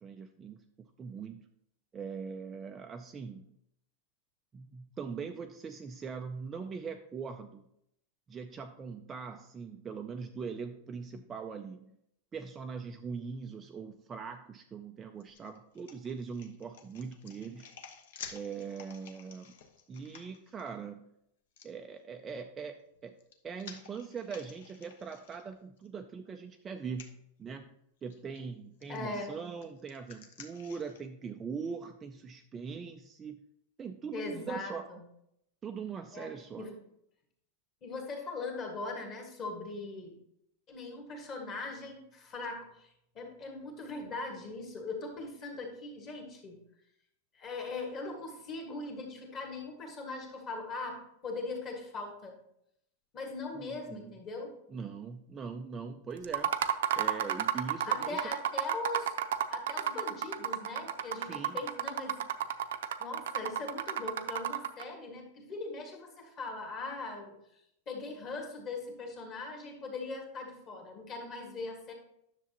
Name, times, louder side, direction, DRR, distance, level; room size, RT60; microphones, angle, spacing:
voice 1, 0.0-1.4 1.9-3.5 4.5-7.7 8.3-11.9 12.3-17.7 18.3-19.5 19.9-21.1 21.6-22.8 23.0-23.2 23.4-33.4 33.8-34.9 35.6-36.7 53.5-54.1 54.7-56.5 56.9-58.3 61.2-61.6, right 5 dB, 15° right, 5 dB, 0.3 m, -41 dB
sound 1, 15.2-20.7 21.6-21.7 22.9-25.9 26.2-26.4 26.9-27.1 28.1-28.4 28.8-31.0, left 7 dB, 65° left, 1.1 m, -52 dB
voice 2, 28.9-29.3 34.1-35.0 36.1-36.3 36.6-36.7 37.8-40.1 40.7-46.6 47.3-52.4 53.1-54.5 57.8-59.1 59.5-62.2 62.5-62.6 63.0-67.6 67.9-71.9, left 3 dB, 25° left, 2 dB, 1.6 m, -40 dB
sound 2, 56.2-64.8, right 10 dB, 80° right, 0.6 m, -32 dB
10.0 x 6.8 x 2.9 m, 0.76 s
supercardioid pair, 175°, 0 cm